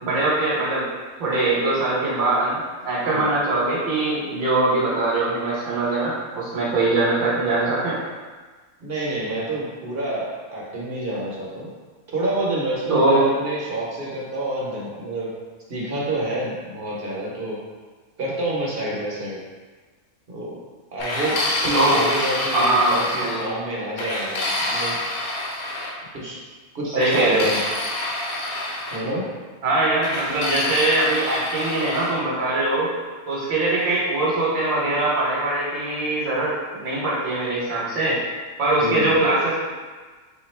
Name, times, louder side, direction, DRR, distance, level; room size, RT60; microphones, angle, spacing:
voice 1, 0.0-0.9 1.2-8.0 12.9-13.3 21.7-22.0 22.5-22.9 23.2-23.4 26.9-27.4 29.6-32.9 33.3-38.2 38.6-39.5, right 2 dB, 70° right, -6 dB, 1.2 m, -22 dB
voice 2, 8.8-11.7 12.1-15.3 15.7-17.6 18.2-19.4 20.3-20.6 20.9-21.3 21.6-25.0 26.1-26.4 26.7-27.6 28.9-29.3 38.8-39.1, right 1 dB, 50° right, -5 dB, 0.9 m, -28 dB
sound 1, 21.0-23.5 24.0-25.9 27.0-29.0 30.0-32.2, left 1 dB, 80° left, 1.1 m, -27 dB
3.7 x 2.8 x 3.1 m, 1.4 s
omnidirectional pair, 1.5 m